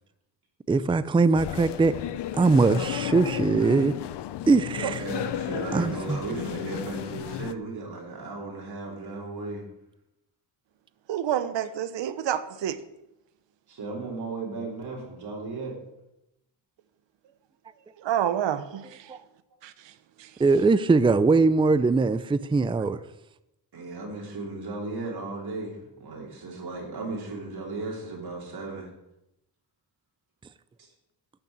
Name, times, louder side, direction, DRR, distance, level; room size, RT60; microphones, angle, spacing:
voice 1, 0.7-1.9 2.3-4.0 4.5-5.0 5.7-6.2 19.1-19.2 20.4-23.0, right 3 dB, 10° right, 0.4 m, -21 dB
sound 1, 1.4-7.5, left 12 dB, 70° left, 0.7 m, -33 dB
voice 2, 4.7-9.6 13.7-15.8 23.7-28.9 30.8-30.9, right 3 dB, 60° right, 3.4 m, -35 dB
voice 3, 11.1-12.8 18.0-19.2 19.6-19.9 20.2-20.4, right 10 dB, 90° right, 1.0 m, -29 dB
12.0 x 6.7 x 8.6 m
cardioid pair, 130°, 43 cm